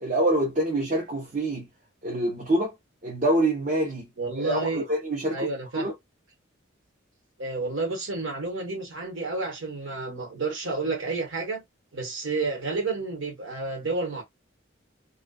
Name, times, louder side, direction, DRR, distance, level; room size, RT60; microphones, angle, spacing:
voice 1, 0.0-1.7 2.0-2.7 3.0-4.1 4.4-5.5 5.7-5.9, right 1 dB, 40° right, 0.6 m, -25 dB
voice 2, 4.2-4.8 5.3-5.9 7.4-11.6 11.9-14.2, right 3 dB, 75° right, 1.1 m, -30 dB
2.5 x 2.1 x 2.2 m
head